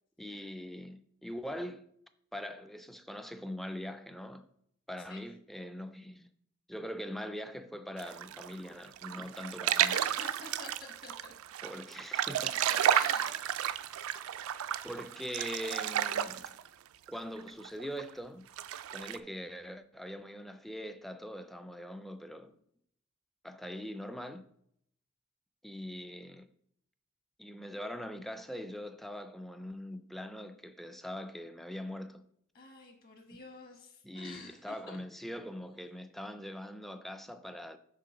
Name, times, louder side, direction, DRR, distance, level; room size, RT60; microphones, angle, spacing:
voice 1, 0.2-1.9 2.3-4.5 4.9-6.3 6.7-9.9 11.6-12.6 14.8-16.5 17.1-18.5 18.9-22.6 23.4-24.4 25.6-26.5 27.4-32.2 34.0-37.8, equal, ahead, 0.3 m, -42 dB
sound 1, 8.0-16.7 17.1-17.2 17.4-18.1 18.6-19.2, right 10 dB, 75° right, 0.3 m, -32 dB
voice 2, 9.8-11.3 12.0-12.3 12.7-13.4 32.5-35.0, left 3 dB, 45° left, 1.3 m, -49 dB
6.7 x 3.2 x 5.0 m
head